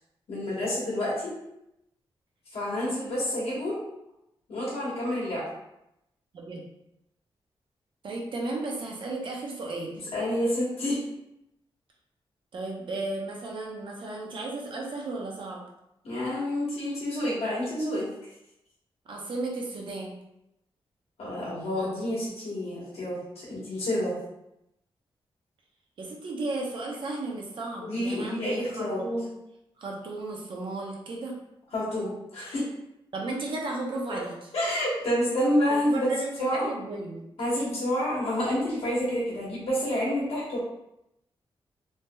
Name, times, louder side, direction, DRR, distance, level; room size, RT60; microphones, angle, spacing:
voice 1, 0.3-1.3 2.5-3.8 4.5-5.4 10.0-11.0 16.0-18.3 21.2-24.1 27.8-29.0 31.7-32.7 34.1-34.2 34.5-36.1 36.4-36.7 37.4-40.6, left 1 dB, 90° left, -7 dB, 1.2 m, -28 dB
voice 2, 8.0-10.0 12.5-15.6 19.1-20.1 26.0-28.4 28.7-29.3 29.8-31.4 33.1-34.5 35.8-37.2, right 2 dB, 55° right, -1 dB, 0.6 m, -34 dB
3.2 x 2.8 x 2.2 m, 0.84 s
wide cardioid pair, 165°, 10 cm